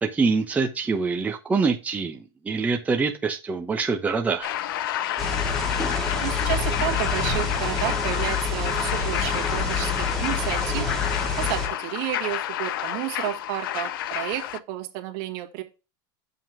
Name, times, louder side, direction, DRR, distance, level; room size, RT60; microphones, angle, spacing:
voice 1, 0.0-4.5, right 4 dB, 15° right, 0.9 m, -25 dB
sound 1, 4.4-14.6, left 12 dB, 75° left, 0.7 m, -29 dB
sound 2, 5.2-11.7, left 3 dB, 5° left, 2.1 m, -27 dB
voice 2, 6.2-10.9 11.4-15.6, right 14 dB, 55° right, 1.9 m, -31 dB
7.4 x 5.6 x 3.6 m
supercardioid pair, 135°, 12 cm